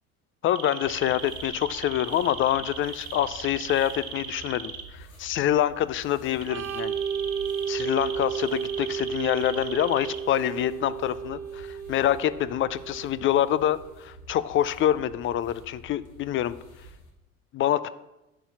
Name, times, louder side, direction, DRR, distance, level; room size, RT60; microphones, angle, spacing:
voice 1, 0.4-7.0 7.7-16.6 17.5-17.9, left 11 dB, 30° left, 16 dB, 0.5 m, -26 dB
sound 1, 0.5-4.8 6.4-10.2, right 8 dB, 85° right, 1.1 m, -38 dB
sound 2, 0.8-17.1, right 1 dB, 85° left, 2.3 m, -49 dB
Organ, 6.4-13.9, right 7 dB, 55° right, 1.4 m, -33 dB
9.9 x 4.6 x 7.3 m, 0.95 s
hypercardioid pair, 75°, 41 cm